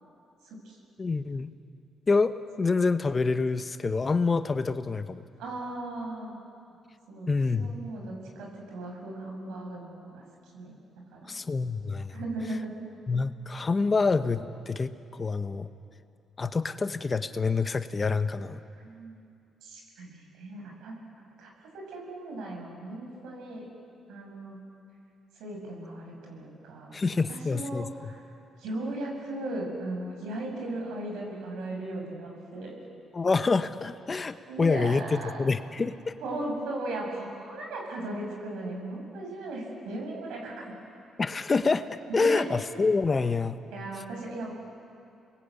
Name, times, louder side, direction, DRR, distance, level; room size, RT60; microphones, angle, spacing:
voice 1, 0.4-0.8 5.4-6.4 7.1-10.2 10.5-10.8 11.1-11.3 12.1-12.8 18.8-19.2 19.6-20.9 21.4-23.7 24.1-24.6 25.4-28.2 28.6-32.8 34.5-35.4 36.2-40.7 42.1-42.5 43.7-44.5, right 2 dB, 85° right, 0 dB, 7.1 m, -37 dB
voice 2, 1.0-1.5 2.1-5.2 7.3-7.7 11.3-12.2 13.1-15.7 16.4-18.6 26.9-27.9 33.1-36.1 41.2-41.8 42.1-43.6, left 4 dB, 30° left, 10 dB, 1.1 m, -27 dB
29.5 x 21.5 x 8.5 m, 2.5 s
cardioid pair, 90°, 0 cm